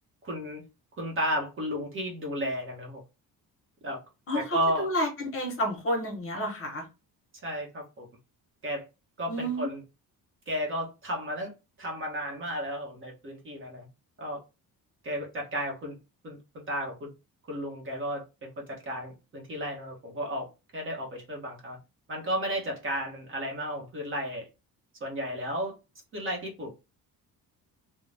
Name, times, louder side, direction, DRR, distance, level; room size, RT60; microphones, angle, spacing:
voice 1, 0.2-0.6 0.9-3.0 3.8-4.0 4.3-4.9 7.4-8.1 8.6-8.8 9.2-9.8 10.5-11.5 11.8-13.9 14.2-14.4 15.0-16.0 16.2-17.1 17.5-21.8 22.1-24.5 25.0-25.7 26.1-26.7, equal, 35° right, 0.9 m, -33 dB
voice 2, 4.3-6.8 9.3-9.7, equal, 35° left, 1.0 m, -30 dB
2.6 x 2.2 x 3.3 m
cardioid pair, 160°, 36 cm